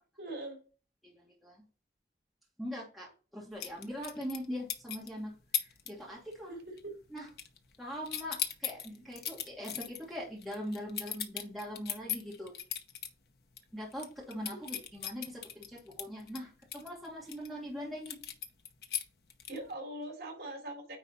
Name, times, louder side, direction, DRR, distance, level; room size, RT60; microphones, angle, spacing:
voice 1, 0.2-0.6 6.5-6.9 14.5-14.8 19.5-21.0, right 1 dB, 65° right, 1 dB, 3.5 m, -42 dB
voice 2, 1.0-1.6 2.6-5.3 5.6-6.5 7.1-7.2 7.8-12.5 13.7-18.2, equal, ahead, -5 dB, 2.3 m, -42 dB
sound 1, 3.6-4.4 4.7-5.1 5.5-5.9 6.2-6.5 6.8-7.8 8.0-13.1 13.5-13.6 13.9-17.5 18.1-19.7, left 9 dB, 65° left, 0.9 m, -38 dB
9.4 x 3.9 x 4.1 m, 0.36 s
head